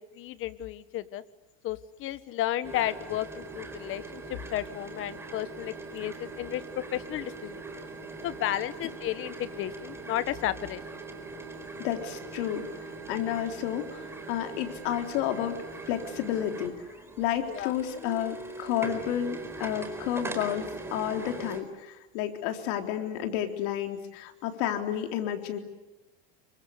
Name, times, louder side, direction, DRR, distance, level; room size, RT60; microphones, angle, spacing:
voice 1, 0.1-1.2 1.6-7.6 8.2-10.8 17.5-17.7, left 13 dB, 40° left, 14 dB, 1.5 m, -33 dB
sound 1, 2.6-21.6, right 3 dB, 10° right, 4.2 m, -41 dB
voice 2, 11.8-15.6 15.9-16.8 17.2-25.6, left 10 dB, 65° left, 5 dB, 3.9 m, -31 dB
28.0 x 24.5 x 8.4 m, 1.0 s
supercardioid pair, 140°, 33 cm